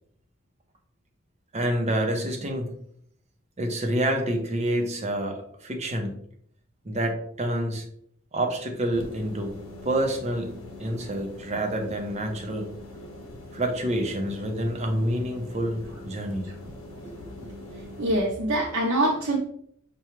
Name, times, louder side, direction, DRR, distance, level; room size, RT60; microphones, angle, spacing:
voice 1, 1.5-2.7 3.6-6.1 6.8-7.9 8.3-9.5 9.8-10.5 10.8-12.7 13.5-16.5 17.0-17.3, right 1 dB, 30° right, 3 dB, 0.7 m, -28 dB
sound 1, 8.9-18.2, left 1 dB, 80° left, 0.8 m, -43 dB
voice 2, 18.0-19.4, right 1 dB, 85° right, -3 dB, 0.7 m, -24 dB
5.6 x 2.3 x 3.1 m, 0.66 s
head